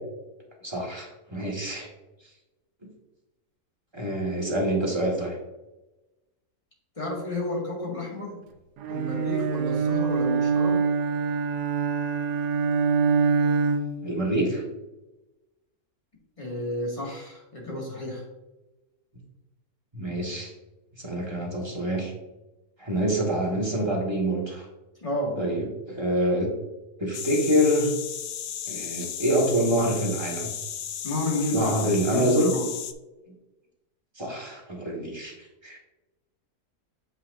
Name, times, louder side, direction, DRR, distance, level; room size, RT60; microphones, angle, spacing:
voice 1, 0.6-1.9 2.8-2.9 3.9-5.4 14.0-14.6 19.9-20.5 21.0-22.1 22.8-24.7 25.4-26.5 27.0-27.9 28.6-30.5 31.5-32.5 33.3-33.4 34.1-35.8, equal, 15° right, -2 dB, 1.4 m, -26 dB
voice 2, 7.0-8.4 8.9-10.9 16.4-18.2 25.0-25.4 31.0-31.7 32.0-32.7, left 1 dB, 20° left, -3 dB, 1.9 m, -31 dB
Bowed string instrument, 8.8-14.1, right 5 dB, 85° right, 1.2 m, -24 dB
sound 1, 27.1-32.9, left 9 dB, 85° left, 0.6 m, -35 dB
7.7 x 5.7 x 2.6 m, 1.0 s
omnidirectional pair, 1.7 m